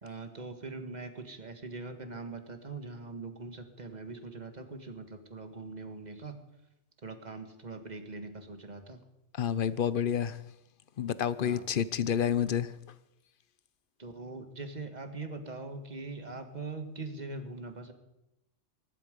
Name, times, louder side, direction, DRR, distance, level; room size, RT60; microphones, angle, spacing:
voice 1, 0.0-6.4 7.0-9.0 11.4-11.7 14.0-17.9, right 3 dB, 35° right, 1.8 m, -42 dB
voice 2, 9.4-10.4 11.0-12.7, left 8 dB, 50° left, 0.8 m, -29 dB
22.0 x 12.0 x 5.3 m
omnidirectional pair, 1.3 m